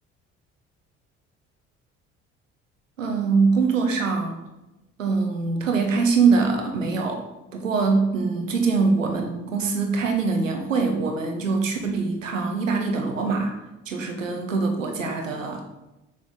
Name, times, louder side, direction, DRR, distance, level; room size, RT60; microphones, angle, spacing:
voice 1, 3.0-4.4 5.0-7.2 7.5-13.5 13.9-15.6, right 4 dB, 85° right, 4 dB, 1.0 m, -23 dB
6.6 x 5.8 x 3.5 m, 0.97 s
figure-of-eight pair, 55°, 38 cm